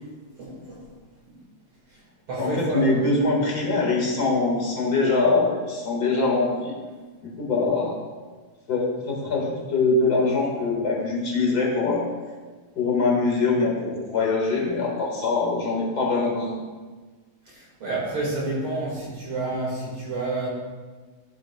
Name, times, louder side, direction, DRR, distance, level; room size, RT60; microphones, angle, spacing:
voice 1, 0.4-0.9 1.3-1.4 1.9-2.0 2.3-3.0 17.5-20.5, right 2 dB, 50° right, -5 dB, 2.3 m, -29 dB
voice 2, 2.4-6.7 7.2-7.9 8.7-12.0 12.7-16.6, left 3 dB, 40° left, -2 dB, 1.6 m, -23 dB
13.5 x 7.4 x 2.2 m, 1.4 s
omnidirectional pair, 3.4 m